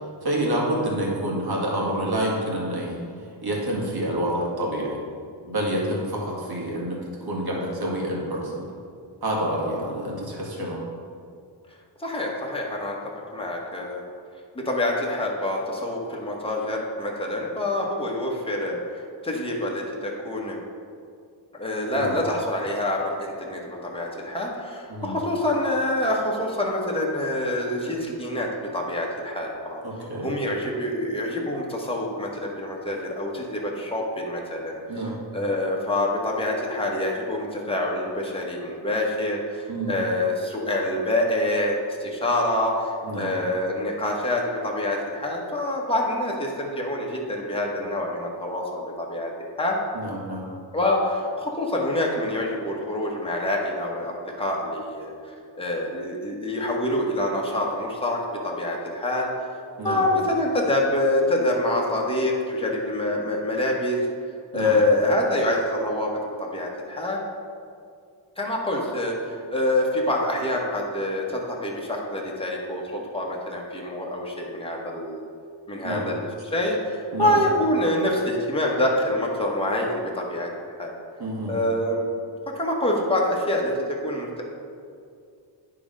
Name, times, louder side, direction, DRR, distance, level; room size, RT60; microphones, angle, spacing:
voice 1, 0.2-3.0 3.4-5.0 5.4-8.6 9.2-10.8 22.0-22.2 24.9-25.1 29.8-30.3 34.9-35.2 39.7-40.0 43.0-43.4 49.9-50.5 59.8-60.0 64.5-64.8 75.8-76.1 77.1-77.4 81.2-81.6, right 1 dB, 50° right, -3 dB, 2.1 m, -28 dB
voice 2, 12.0-13.0 13.3-14.0 14.5-20.6 21.5-29.8 30.2-49.3 49.6-49.8 50.7-59.3 59.8-64.0 64.5-67.2 68.4-75.3 75.7-80.5 80.8-80.9 81.4-82.0 82.5-84.4, left 1 dB, 10° left, -2 dB, 1.5 m, -26 dB
9.7 x 3.8 x 5.4 m, 2.3 s
cardioid pair, 80°, 47 cm